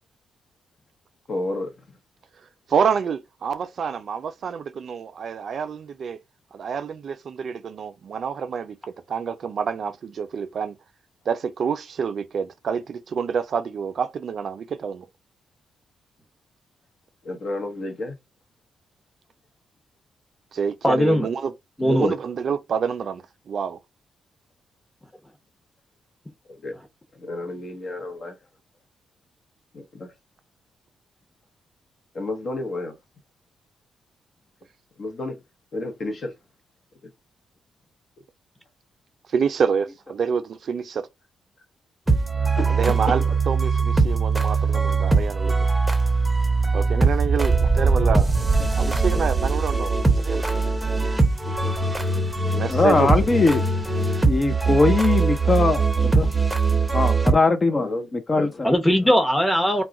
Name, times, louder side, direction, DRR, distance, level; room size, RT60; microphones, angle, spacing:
voice 1, 1.3-1.8 17.2-18.2 26.5-26.7 27.1-28.4 29.7-30.1 32.1-33.0 35.0-35.4 35.7-36.3 42.5-43.4 57.7-58.1 58.4-58.5, left 2 dB, 55° left, 0.8 m, -31 dB
voice 2, 2.7-6.2 6.5-8.8 9.1-10.7 11.3-15.0 20.5-21.5 21.8-23.2 23.5-23.8 39.3-41.1 42.8-45.7 46.7-48.3 48.8-50.0 50.3-50.4 52.5-53.1, right 6 dB, 60° right, 0.4 m, -27 dB
voice 3, 20.8-21.3 21.8-22.2 58.6-59.8, equal, 15° left, 0.8 m, -19 dB
sound 1, 42.1-57.3, right 4 dB, 15° right, 0.6 m, -21 dB
voice 4, 52.7-53.6 54.3-56.3 56.9-58.7 59.0-59.1, left 3 dB, 35° left, 0.5 m, -21 dB
2.3 x 2.1 x 3.7 m
supercardioid pair, 55°, 0 cm